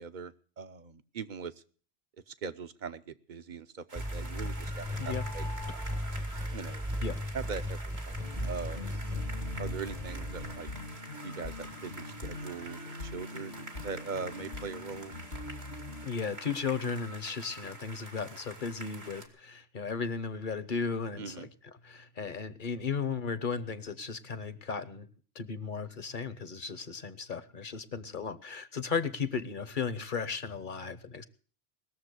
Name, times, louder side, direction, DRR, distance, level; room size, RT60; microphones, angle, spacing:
voice 1, 0.0-1.5 2.3-5.4 6.5-6.8 7.3-7.8 8.1-8.2 8.5-9.0 9.6-10.7 11.2-15.1 21.2-21.5, right 5 dB, 50° right, 12 dB, 1.0 m, -41 dB
sound 1, 3.9-19.3, right 2 dB, 80° right, 2.7 m, -47 dB
sound 2, 4.0-10.5, equal, 5° right, 0.7 m, -36 dB
sound 3, 8.2-16.1, left 2 dB, 70° left, 1.8 m, -43 dB
voice 2, 16.0-21.5 21.8-25.1 25.3-31.3, left 5 dB, 55° left, 15 dB, 1.1 m, -35 dB
20.0 x 7.1 x 8.2 m, 0.43 s
omnidirectional pair, 1.1 m